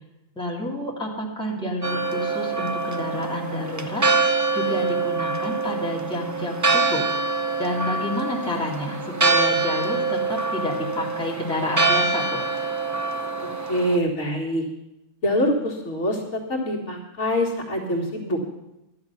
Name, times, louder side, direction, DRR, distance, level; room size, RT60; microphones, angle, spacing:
voice 1, 0.4-4.0 4.5-7.0 7.6-12.5, left 1 dB, 5° left, -3 dB, 2.1 m, -29 dB
Church bell, 1.8-14.0, right 3 dB, 25° right, 0.4 m, -25 dB
voice 2, 13.7-14.6 15.2-18.4, equal, 55° left, -2 dB, 2.1 m, -24 dB
13.0 x 10.5 x 5.7 m, 0.92 s
omnidirectional pair, 1.4 m